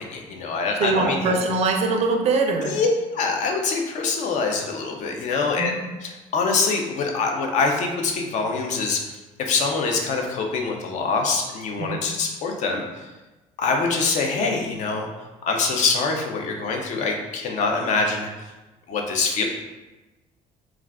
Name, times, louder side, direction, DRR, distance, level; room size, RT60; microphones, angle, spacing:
voice 1, 0.0-1.4 2.6-5.7 6.0-9.0 9.4-12.8 13.6-15.1 15.5-18.3 18.9-19.4, left 4 dB, 55° left, 2 dB, 0.5 m, -24 dB
voice 2, 0.8-2.7 5.6-5.8 11.9-12.0, right 3 dB, 45° right, 3 dB, 0.4 m, -22 dB
2.3 x 2.3 x 3.4 m, 1.1 s
cardioid pair, 125°, 15 cm